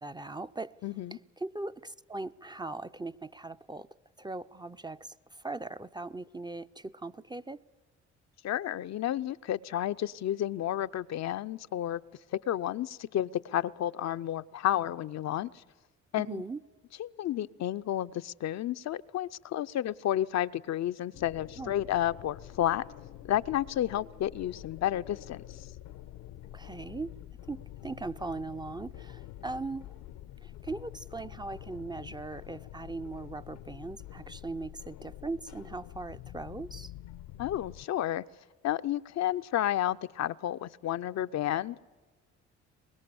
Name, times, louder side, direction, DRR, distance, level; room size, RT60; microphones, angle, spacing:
voice 1, 0.0-0.7 1.1-3.9 4.2-5.2 5.4-7.6 16.3-16.6 21.6-21.7 26.5-27.1 27.5-29.9 30.4-36.9, right 3 dB, 15° right, 0.6 m, -39 dB
voice 2, 0.8-1.2 8.4-12.0 12.3-15.5 16.1-16.4 17.0-22.8 23.3-25.4 37.4-38.2 38.6-41.8, left 12 dB, 60° left, 0.6 m, -31 dB
sound 1, 21.1-37.9, left 13 dB, 85° left, 1.0 m, -47 dB
24.0 x 21.0 x 7.0 m
supercardioid pair, 55°, 31 cm